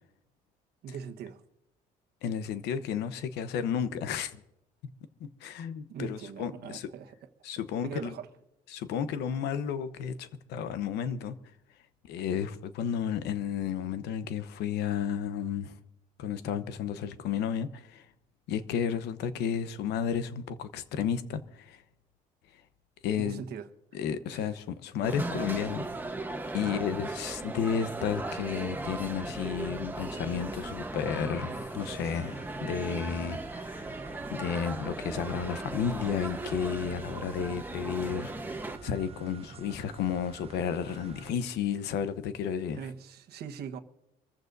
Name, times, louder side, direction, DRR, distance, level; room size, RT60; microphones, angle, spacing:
voice 1, 0.8-1.4 5.9-7.2 7.8-8.3 23.2-24.0 24.3-24.6 26.6-27.1 42.8-43.8, right 7 dB, 70° right, 1.2 m, -41 dB
voice 2, 2.2-4.4 5.2-6.9 7.4-8.1 8.7-11.4 12.1-15.7 16.2-18.0 18.5-21.8 23.0-23.4 23.9-25.8 26.5-42.8, left 8 dB, 80° left, 1.0 m, -32 dB
sound 1, 25.0-38.8, right 2 dB, 10° right, 1.1 m, -37 dB
sound 2, 31.8-41.3, right 6 dB, 35° right, 0.7 m, -49 dB
26.0 x 14.5 x 2.7 m
cardioid pair, 110°, 17 cm